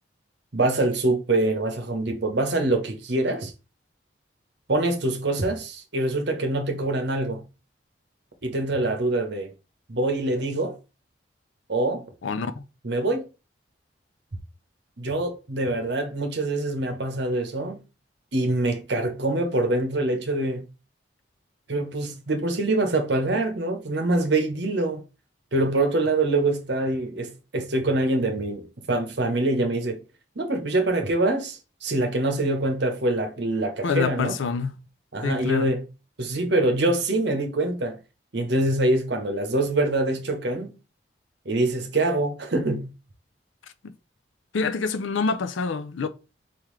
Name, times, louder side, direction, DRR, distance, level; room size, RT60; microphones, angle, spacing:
voice 1, 0.5-3.5 4.7-7.4 8.4-9.5 9.9-10.8 11.7-12.0 12.8-13.2 15.0-17.8 18.3-20.6 21.7-25.0 25.5-30.0 30.4-34.4 35.1-35.9 36.2-38.0 38.3-40.7 41.4-42.9, right 2 dB, 65° right, 1.0 m, -25 dB
voice 2, 12.2-12.6 33.8-34.8 35.2-35.7 43.8-43.9 44.5-46.1, left 5 dB, 85° left, 0.5 m, -27 dB
4.4 x 3.7 x 3.1 m
head